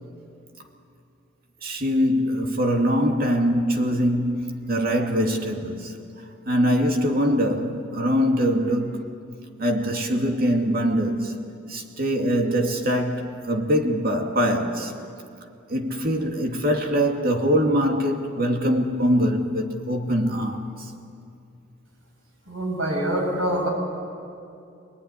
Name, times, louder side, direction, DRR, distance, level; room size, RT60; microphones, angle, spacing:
voice 1, 1.6-6.0 6.5-9.0 9.6-11.3 11.7-14.9 15.7-20.9, equal, 50° right, 2.5 m, -23 dB
voice 2, 22.5-23.7, right 1 dB, 80° right, 7.6 m, -25 dB
26.0 x 20.0 x 10.0 m
head